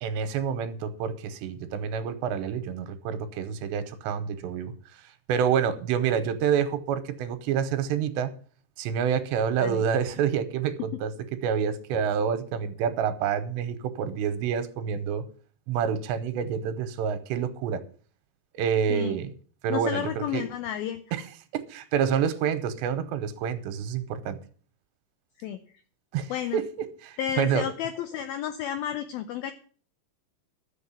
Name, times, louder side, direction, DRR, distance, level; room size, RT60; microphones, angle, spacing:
voice 1, 0.0-4.7 5.3-8.3 8.8-11.1 11.4-15.3 15.7-17.8 18.5-19.3 19.6-20.4 21.1-21.2 21.5-24.4 26.1-26.7 27.0-27.7, right 7 dB, 85° right, 3.0 m, -28 dB
voice 2, 19.7-21.0 25.4-25.6 26.3-26.6 27.2-29.5, left 10 dB, 85° left, 2.1 m, -31 dB
11.5 x 7.5 x 7.1 m
omnidirectional pair, 5.1 m